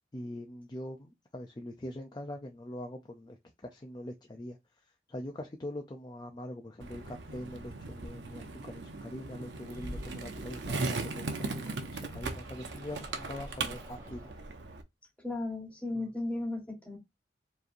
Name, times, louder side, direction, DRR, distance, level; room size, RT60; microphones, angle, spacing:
voice 1, 0.1-4.6 5.1-14.3, left 1 dB, 25° left, 0.5 m, -43 dB
Skateboard, 6.8-14.8, right 3 dB, 90° right, 0.7 m, -38 dB
sound 1, 9.6-10.8 11.7-14.3, equal, 20° right, 1.5 m, -48 dB
voice 2, 15.2-17.0, left 2 dB, 10° left, 1.4 m, -35 dB
4.7 x 3.1 x 2.6 m
head